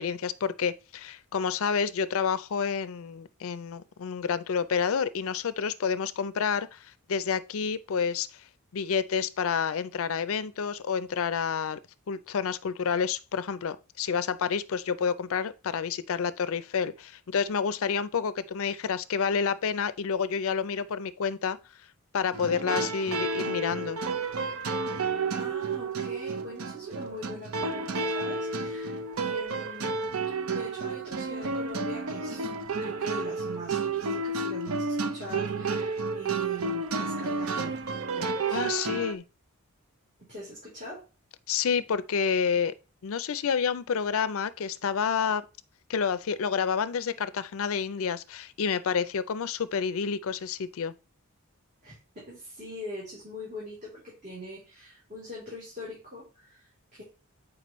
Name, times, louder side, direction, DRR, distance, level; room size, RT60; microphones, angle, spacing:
voice 1, 0.0-6.8 7.1-8.3 8.7-11.8 12.1-21.6 22.1-24.0 38.5-39.2 41.5-42.7 43.0-45.4 45.9-50.9, left 6 dB, 65° left, 0.4 m, -29 dB
sound 1, 22.3-39.2, right 3 dB, 70° right, 0.6 m, -31 dB
voice 2, 25.3-30.0 30.5-32.4 32.8-37.8 38.1-38.9 40.2-41.0 51.8-57.0, left 1 dB, 35° right, 3.4 m, -42 dB
7.5 x 4.9 x 3.1 m
head